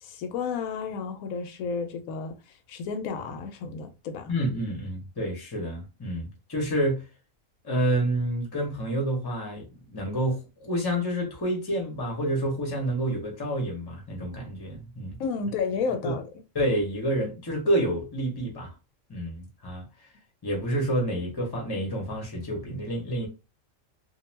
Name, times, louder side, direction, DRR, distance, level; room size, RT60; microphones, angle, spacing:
voice 1, 0.0-2.3 2.7-4.3 15.2-16.2, left 5 dB, 90° left, 1.0 m, -31 dB
voice 2, 4.3-7.0 7.6-15.2 16.0-16.2 16.5-18.7 19.1-19.8 20.4-23.3, right 1 dB, 20° left, 0.7 m, -28 dB
2.4 x 2.2 x 3.1 m
omnidirectional pair, 1.4 m